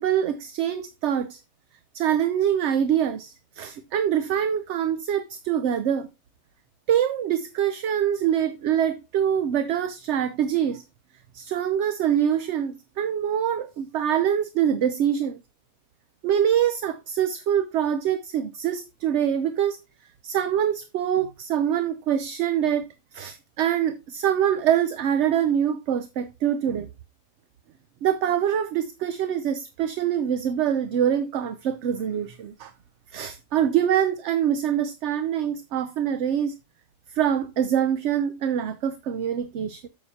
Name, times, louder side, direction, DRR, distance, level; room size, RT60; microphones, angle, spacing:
voice 1, 0.0-1.4 1.9-6.1 6.9-10.8 11.3-15.4 16.2-19.8 20.2-26.9 28.0-32.7 33.1-36.5 37.1-39.9, right 9 dB, 65° right, 0.8 m, -24 dB
8.6 x 7.1 x 2.7 m
omnidirectional pair, 1.4 m